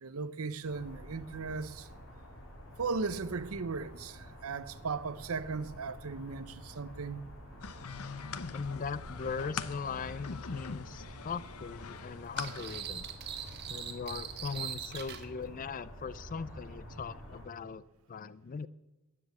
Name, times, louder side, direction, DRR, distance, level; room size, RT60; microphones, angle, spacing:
voice 1, 0.0-1.9 2.8-7.2, right 4 dB, 70° right, 0.7 m, -37 dB
sound 1, 0.6-17.5, equal, 60° left, 4.0 m, -49 dB
sound 2, 7.6-12.8, left 6 dB, 85° left, 0.8 m, -43 dB
voice 2, 8.5-13.1 13.7-18.7, left 5 dB, 40° left, 0.4 m, -40 dB
sound 3, 12.4-15.3, right 9 dB, 50° right, 1.5 m, -41 dB
13.5 x 10.0 x 8.2 m
head